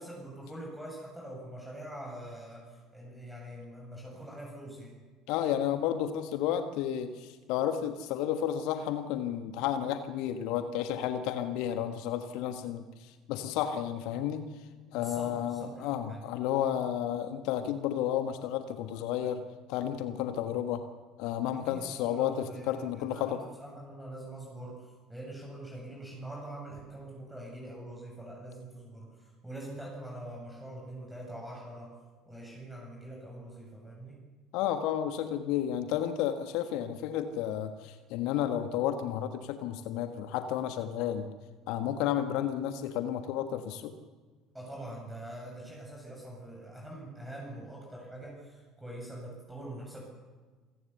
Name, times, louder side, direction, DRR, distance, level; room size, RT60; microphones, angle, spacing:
voice 1, 0.0-5.0 14.9-16.2 21.5-31.9 32.3-34.2 44.5-50.0, right 1 dB, 5° right, -2 dB, 7.6 m, -44 dB
voice 2, 5.3-14.5 14.9-20.8 21.2-23.4 34.5-41.3 41.7-43.9, left 10 dB, 60° left, 8 dB, 1.4 m, -32 dB
27.0 x 17.5 x 7.0 m, 1.4 s
figure-of-eight pair, 60°, 0 cm